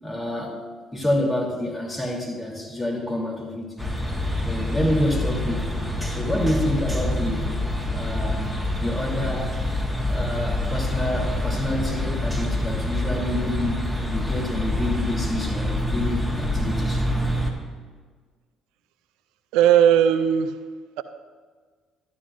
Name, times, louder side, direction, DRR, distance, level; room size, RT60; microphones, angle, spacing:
voice 1, 0.0-0.6 0.9-3.7 4.4-5.8 6.1-7.5 7.9-8.5 8.8-9.5 10.1-13.8 14.1-17.1, left 1 dB, 20° left, -1 dB, 3.0 m, -28 dB
sound 1, 3.8-17.5, left 1 dB, 5° left, 1.6 m, -26 dB
voice 2, 19.5-20.6 21.0-21.1, right 9 dB, 75° right, 10 dB, 0.4 m, -17 dB
12.5 x 11.5 x 2.5 m, 1.6 s
hypercardioid pair, 55°, 0 cm